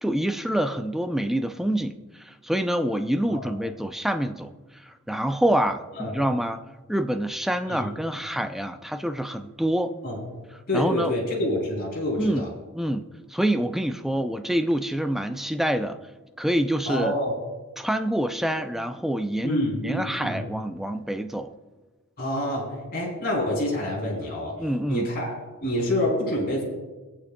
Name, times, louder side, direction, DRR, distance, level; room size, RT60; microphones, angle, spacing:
voice 1, 0.0-4.5 4.8-6.6 6.9-9.9 10.7-11.1 12.2-12.5 12.7-16.0 16.4-17.2 17.8-21.5 24.6-25.1, right 1 dB, ahead, 7 dB, 0.4 m, -26 dB
voice 2, 10.7-12.5 16.8-17.3 19.4-20.4 22.2-24.6 24.9-26.6, left 1 dB, 45° left, -5 dB, 3.4 m, -27 dB
26.0 x 8.7 x 2.2 m, 1.2 s
head